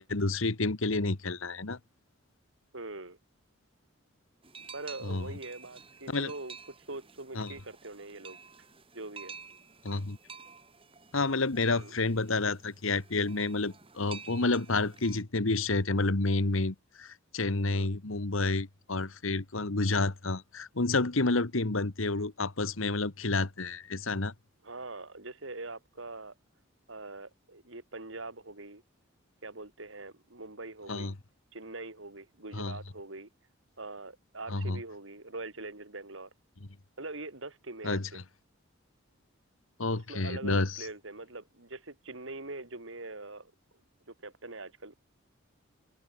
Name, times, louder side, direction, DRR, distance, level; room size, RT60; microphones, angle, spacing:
voice 1, 0.0-1.8 5.0-5.3 6.1-6.3 7.3-7.5 9.8-10.2 11.1-24.3 30.9-31.1 32.5-32.8 34.5-34.8 37.8-38.1 39.8-40.9, left 3 dB, 80° left, 1.5 m, -29 dB
voice 2, 2.7-3.2 4.7-8.4 8.9-9.3 11.7-12.0 17.7-17.9 24.6-26.3 26.9-28.8 29.4-31.1 31.5-33.3 33.8-36.3 37.0-38.2 39.9-43.5 44.1-44.9, right 2 dB, 70° right, 3.3 m, -43 dB
sound 1, 4.4-15.2, right 5 dB, 25° right, 4.9 m, -51 dB
open air
head